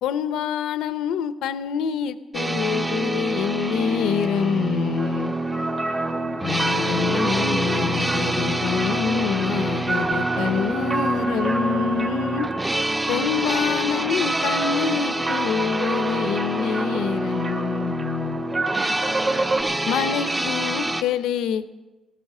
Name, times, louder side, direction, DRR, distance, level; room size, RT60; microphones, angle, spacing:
voice 1, 0.0-5.3 6.4-12.5 13.1-18.4 19.9-21.7, left 8 dB, 85° left, 14 dB, 0.6 m, -26 dB
sound 1, 2.3-21.0, right 2 dB, 20° right, 0.9 m, -27 dB
sound 2, 5.0-19.6, right 3 dB, 35° right, 2.4 m, -29 dB
sound 3, 6.4-15.1 18.5-19.8, right 1 dB, 5° left, 0.6 m, -34 dB
14.5 x 13.0 x 6.6 m, 1.2 s
cardioid pair, 90°, 0 cm